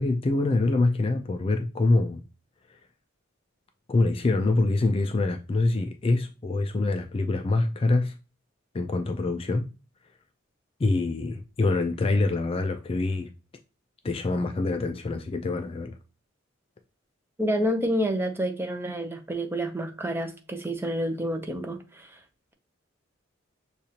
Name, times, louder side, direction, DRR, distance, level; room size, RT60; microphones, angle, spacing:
voice 1, 0.0-2.2 2.7-2.8 3.9-8.1 8.7-9.7 10.8-13.3 14.0-16.0, left 2 dB, 30° left, 0.3 m, -25 dB
voice 2, 17.4-22.2, equal, 10° right, 0.6 m, -29 dB
6.5 x 2.4 x 2.8 m
head